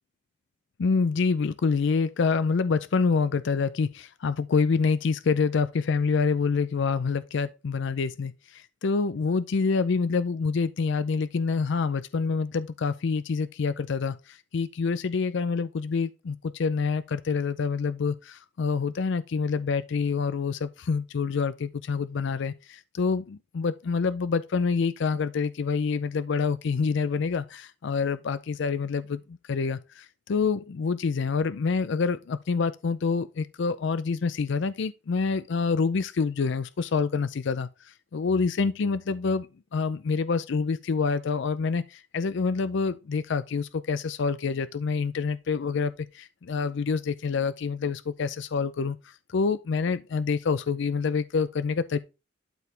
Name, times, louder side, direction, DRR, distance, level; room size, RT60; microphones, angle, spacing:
voice 1, 0.8-52.0, left 5 dB, 65° left, 0.4 m, -27 dB
12.0 x 4.7 x 3.3 m
head